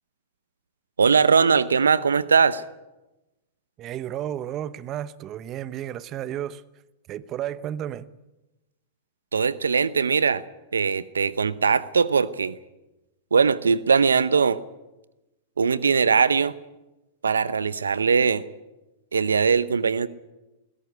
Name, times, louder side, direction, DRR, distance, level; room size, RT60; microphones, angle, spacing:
voice 1, 1.0-2.6 9.3-10.4 10.7-12.6 13.3-14.6 15.6-16.5 17.2-18.4 19.1-20.1, right 5 dB, 90° right, 0.8 m, -20 dB
voice 2, 3.8-6.6 7.1-8.1, right 11 dB, 35° right, 0.9 m, -32 dB
20.5 x 16.5 x 9.6 m
hypercardioid pair, 105°, 0 cm